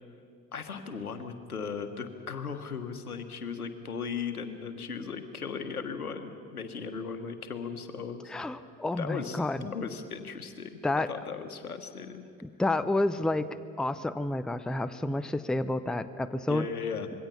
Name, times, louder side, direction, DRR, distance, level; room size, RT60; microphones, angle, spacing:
voice 1, 0.5-8.3 9.0-10.8 11.1-12.2 16.5-17.1, left 6 dB, 85° left, 8 dB, 1.5 m, -37 dB
voice 2, 8.3-9.7 10.8-11.1 12.4-16.7, left 2 dB, ahead, 13 dB, 0.6 m, -30 dB
26.0 x 22.5 x 5.7 m, 2.3 s
figure-of-eight pair, 70°, 43 cm